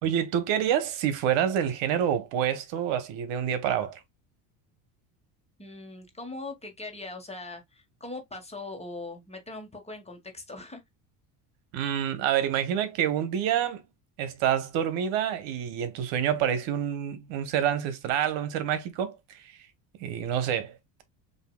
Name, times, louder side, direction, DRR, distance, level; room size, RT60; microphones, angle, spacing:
voice 1, 0.0-4.0 11.7-13.8 14.2-19.2 20.0-21.0, right 9 dB, 70° right, 1.3 m, -27 dB
voice 2, 5.6-10.8, left 2 dB, 15° left, 1.5 m, -40 dB
6.6 x 2.8 x 2.3 m
supercardioid pair, 105°, 47 cm